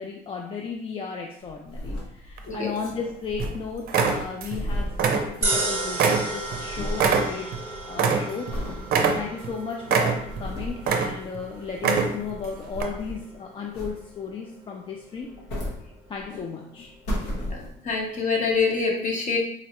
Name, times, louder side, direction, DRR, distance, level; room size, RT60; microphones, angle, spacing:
voice 1, 0.0-7.5 7.9-15.3 16.1-16.9 17.4-17.5, left 5 dB, 30° left, 0 dB, 0.3 m, -35 dB
sound 1, 1.4-2.6 2.8-2.9 3.1-5.9 6.1-7.2 7.6-7.9 8.5-8.9 9.4-9.5 10.0-10.9 11.9-13.3 13.7-14.3 15.1-16.4 16.8-18.0 18.6-18.7, equal, 80° left, 1.0 m, -34 dB
sound 2, 2.4-3.0 3.4-3.6 3.9-4.6 4.9-5.6 6.0-8.5 8.9-9.5 9.9-10.4 10.8-11.4 11.7-12.3 12.8-12.9, right 5 dB, 60° right, 0.5 m, -23 dB
sound 3, 5.4-17.8, right 2 dB, 15° right, 1.0 m, -35 dB
voice 2, 17.5-19.4, left 4 dB, 45° left, -1 dB, 0.9 m, -26 dB
3.7 x 2.1 x 2.9 m, 0.72 s
cardioid pair, 110°, 17 cm